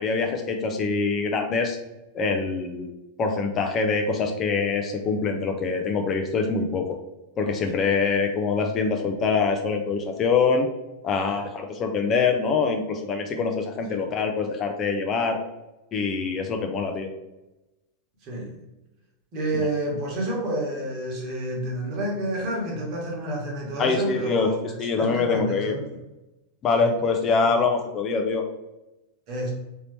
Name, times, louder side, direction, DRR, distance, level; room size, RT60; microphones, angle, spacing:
voice 1, 0.0-1.8 2.1-2.9 3.2-7.0 7.4-10.7 11.0-15.4 15.9-17.1 23.8-24.5 24.8-25.8 26.6-28.4, left 4 dB, 30° left, 4 dB, 0.4 m, -24 dB
voice 2, 18.2-18.6 19.3-24.7 25.0-25.9 26.8-26.9 27.4-27.5 29.3-29.5, right 1 dB, 40° right, -2 dB, 1.3 m, -30 dB
3.9 x 2.8 x 3.2 m, 0.98 s
figure-of-eight pair, 90°, 0 cm